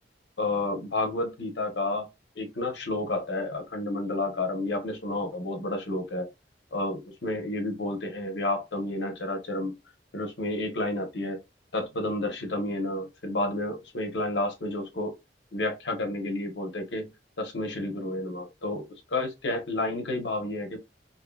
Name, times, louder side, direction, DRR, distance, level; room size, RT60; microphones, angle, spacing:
voice 1, 0.4-2.1 2.4-6.3 6.7-9.7 10.1-11.4 11.7-15.1 15.5-17.1 17.4-20.8, left 2 dB, 85° left, 0.9 m, -30 dB
2.7 x 2.7 x 2.2 m
head